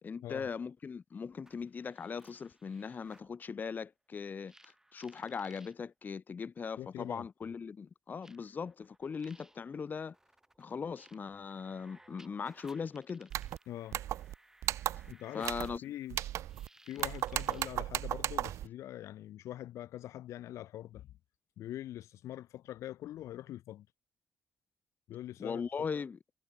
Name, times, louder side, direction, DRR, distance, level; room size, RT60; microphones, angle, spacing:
voice 1, 0.0-10.2 10.6-13.3 15.3-15.8 25.4-26.2, left 6 dB, 40° left, 0.4 m, -39 dB
sound 1, 1.3-3.3 4.5-5.7 6.8-6.9 8.2-17.8, right 1 dB, 10° right, 5.1 m, -62 dB
voice 2, 6.8-7.5 13.7-14.0 15.1-15.5 15.8-16.2 16.9-21.1 21.6-23.9 25.1-25.7, left 13 dB, 85° left, 0.5 m, -44 dB
sound 2, 13.3-13.6 13.9-14.3 14.6-15.1 15.4-15.8 16.1-16.7 17.0-18.7, right 13 dB, 85° right, 0.5 m, -35 dB
cardioid pair, 80°, 5 cm